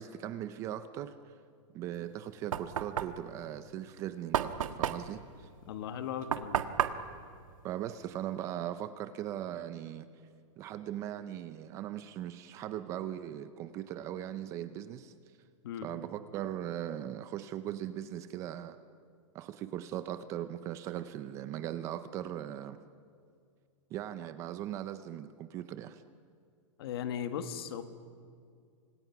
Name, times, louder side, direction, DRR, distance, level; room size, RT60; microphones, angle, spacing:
voice 1, 0.0-1.4 1.7-5.5 7.6-10.1 10.6-15.1 15.8-18.8 19.3-22.8 23.9-26.0, right 11 dB, 15° right, 12 dB, 0.5 m, -39 dB
Knock, 2.0-8.4, right 9 dB, 85° right, 1.6 m, -35 dB
voice 2, 5.6-6.7 15.6-15.9 26.8-27.8, left 8 dB, 50° left, 9 dB, 1.7 m, -37 dB
29.5 x 26.0 x 6.0 m, 2.3 s
supercardioid pair, 170°, 17 cm